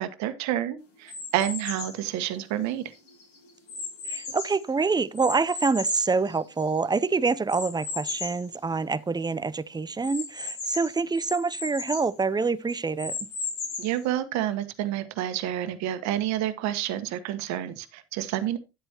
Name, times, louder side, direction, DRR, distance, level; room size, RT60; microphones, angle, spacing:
voice 1, 0.0-2.8 13.8-18.6, right 12 dB, 65° right, 1.4 m, -29 dB
sound 1, 1.1-2.0 2.7-4.7 5.2-6.8 7.5-8.5 8.9-9.0 9.2-9.3 10.0-12.1 12.7-14.0, left 5 dB, 75° left, 6.3 m, -36 dB
voice 2, 4.0-13.3, right 4 dB, 15° right, 0.6 m, -26 dB
11.0 x 7.9 x 2.9 m
hypercardioid pair, 75°, 29 cm